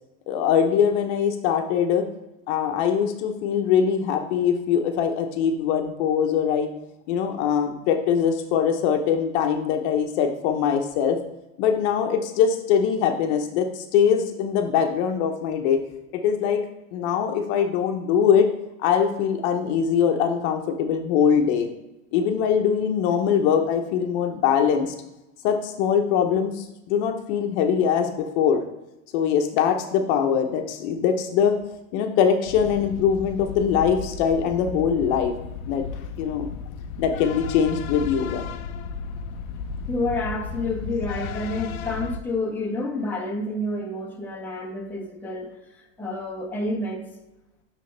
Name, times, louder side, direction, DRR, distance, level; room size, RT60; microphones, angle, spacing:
voice 1, 0.3-2.1 2.5-6.7 7.1-11.2 11.6-15.8 16.1-16.6 16.9-18.5 18.8-21.7 22.1-24.9 25.4-28.6 29.1-31.6 31.9-35.3 35.6-35.9 36.2-36.5 37.0-38.5, left 7 dB, 55° left, 5 dB, 0.9 m, -22 dB
sound 1, 32.5-42.2, left 5 dB, 80° left, 0.6 m, -34 dB
voice 2, 39.9-47.1, left 2 dB, 5° left, -2 dB, 0.9 m, -29 dB
9.0 x 3.4 x 3.3 m, 0.94 s
supercardioid pair, 130°, 41 cm